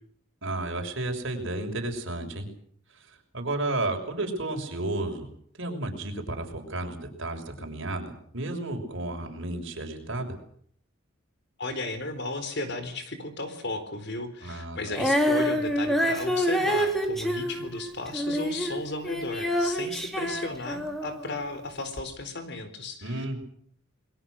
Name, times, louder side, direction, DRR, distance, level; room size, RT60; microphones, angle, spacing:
voice 1, 0.4-2.5 2.9-5.3 5.6-10.4 14.4-14.8 23.0-23.4, right 2 dB, 65° right, 3 dB, 6.3 m, -32 dB
voice 2, 11.6-23.2, left 2 dB, 55° left, 10 dB, 4.2 m, -35 dB
Female singing, 14.9-21.3 22.0-22.1, equal, ahead, 3.6 m, -27 dB
28.5 x 22.0 x 6.5 m, 0.63 s
head